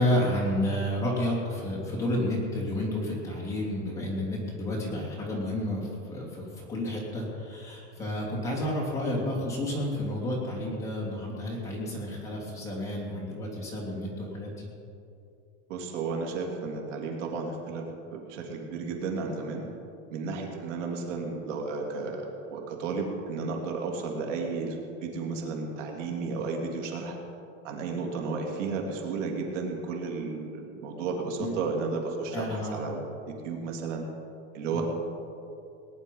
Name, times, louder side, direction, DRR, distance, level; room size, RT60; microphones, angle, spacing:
voice 1, 0.0-14.7 31.4-31.5 32.3-32.8 34.7-34.8, left 1 dB, 10° left, -5 dB, 2.9 m, -30 dB
voice 2, 15.7-17.8 18.1-19.6 20.1-27.2 27.6-34.0 34.5-34.8, right 4 dB, 75° right, 1 dB, 3.0 m, -33 dB
19.5 x 10.5 x 5.5 m, 2.6 s
supercardioid pair, 170°, 37 cm